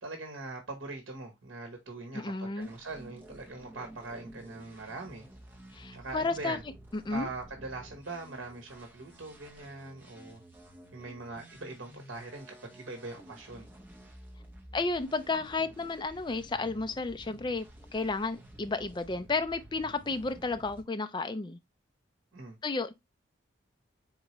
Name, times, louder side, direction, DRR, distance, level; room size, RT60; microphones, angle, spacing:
voice 1, 0.0-5.2 5.9-6.6 7.1-10.4 10.9-13.7 22.3-22.6, right 2 dB, 65° right, 1.0 m, -42 dB
voice 2, 2.1-2.7 5.7-6.6 7.1-7.3 14.7-21.6 22.6-23.0, left 3 dB, 20° left, 0.3 m, -32 dB
sound 1, 2.6-20.8, right 1 dB, 10° right, 0.7 m, -52 dB
4.4 x 3.7 x 3.0 m
head